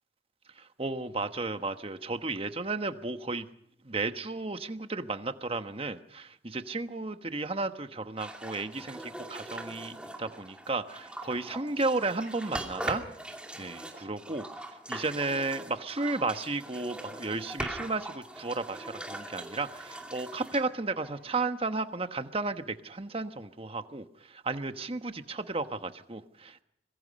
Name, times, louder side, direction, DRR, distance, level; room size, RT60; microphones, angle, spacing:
voice 1, 0.8-3.5 3.8-13.0 13.6-14.4 14.9-26.6, right 3 dB, 30° right, 9 dB, 1.2 m, -33 dB
sound 1, 8.2-21.7, right 1 dB, 5° right, 2.5 m, -41 dB
25.0 x 22.0 x 5.3 m, 0.73 s
head